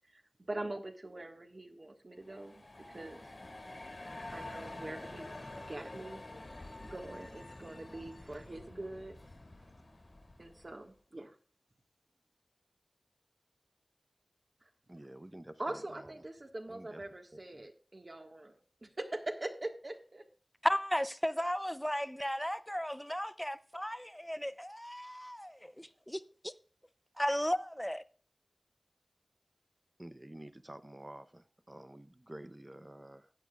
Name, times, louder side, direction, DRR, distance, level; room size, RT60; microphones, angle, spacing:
voice 1, 0.1-2.6 2.9-3.3 4.3-5.3 5.7-6.2 6.8-9.2 10.4-11.4 15.6-20.2, right 2 dB, 50° right, 1.7 m, -43 dB
sound 1, 2.2-10.9, left 2 dB, 55° left, 2.3 m, -48 dB
voice 2, 14.9-16.1 16.7-17.7 30.0-33.3, right 1 dB, 25° right, 0.8 m, -50 dB
voice 3, 20.6-26.5 27.2-28.0, equal, 5° left, 0.6 m, -35 dB
15.5 x 9.1 x 2.4 m
wide cardioid pair, 55°, 0 cm